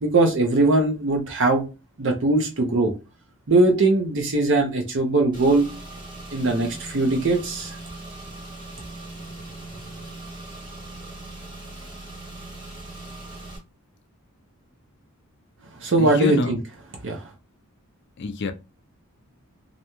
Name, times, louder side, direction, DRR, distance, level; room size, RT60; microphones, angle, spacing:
voice 1, 0.0-1.6 2.0-2.9 3.5-5.7 6.3-7.8 15.8-16.6 17.0-17.2, right 2 dB, 55° right, 0.6 m, -20 dB
Car / Engine, 5.3-13.6, right 2 dB, 20° right, 1.0 m, -39 dB
voice 2, 16.0-16.6 18.2-18.5, left 4 dB, 50° left, 0.4 m, -27 dB
2.5 x 2.1 x 2.9 m
head